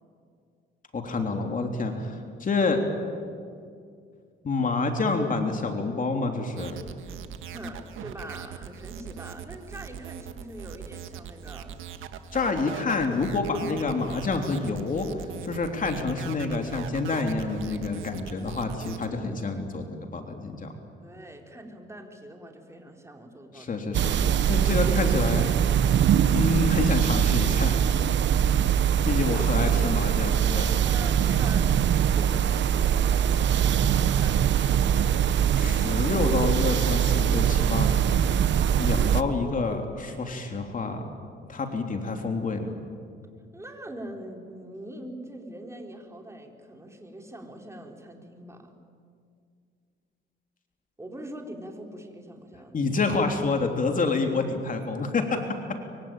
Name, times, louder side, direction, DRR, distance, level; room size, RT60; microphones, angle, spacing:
voice 1, 0.9-2.8 4.4-6.8 12.3-15.1 15.4-20.7 23.5-25.5 26.3-27.8 28.7-28.8 29.1-30.8 35.5-37.9 38.8-41.0 41.5-42.7 52.7-55.4, left 3 dB, 40° left, 4 dB, 3.4 m, -28 dB
sound 1, 6.6-19.1, right 9 dB, 85° right, 1.6 m, -41 dB
voice 2, 7.5-11.7 17.6-17.9 21.0-23.9 29.3-29.4 30.9-35.2 43.5-48.7 51.0-53.0, right 1 dB, 15° right, 2 dB, 4.0 m, -43 dB
sound 2, 23.9-39.2, right 9 dB, 65° right, 1.1 m, -22 dB
24.5 x 24.0 x 9.1 m, 2.2 s
cardioid pair, 90°, 20 cm